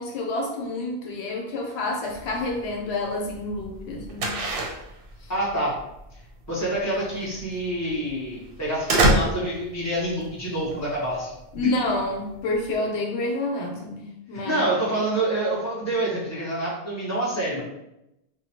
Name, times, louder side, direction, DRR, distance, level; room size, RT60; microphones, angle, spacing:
voice 1, 0.0-4.3 11.5-14.7, left 2 dB, 90° left, 2 dB, 0.9 m, -28 dB
sound 1, 2.1-12.7, right 1 dB, 65° right, 0.7 m, -29 dB
voice 2, 5.3-5.8 6.5-11.3 14.3-17.6, right 1 dB, 15° left, -7 dB, 0.9 m, -27 dB
2.9 x 2.2 x 2.8 m, 0.87 s
omnidirectional pair, 1.1 m